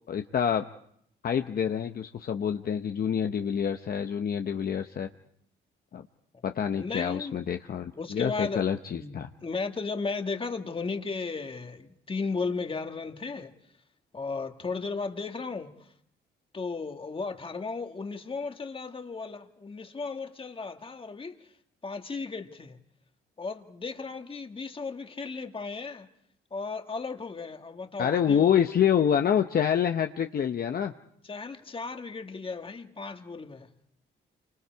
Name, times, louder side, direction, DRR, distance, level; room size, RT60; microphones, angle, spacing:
voice 1, 0.1-0.7 1.2-5.1 5.9-6.0 6.4-9.3 28.0-30.9, left 8 dB, 50° left, 0.9 m, -27 dB
voice 2, 6.6-7.4 7.9-8.6 8.9-13.5 14.1-15.7 16.5-21.3 21.8-22.8 23.4-26.1 26.5-28.7 31.2-33.7, left 4 dB, 25° left, 1.8 m, -35 dB
28.5 x 25.0 x 4.7 m
cardioid pair, 90°, 20 cm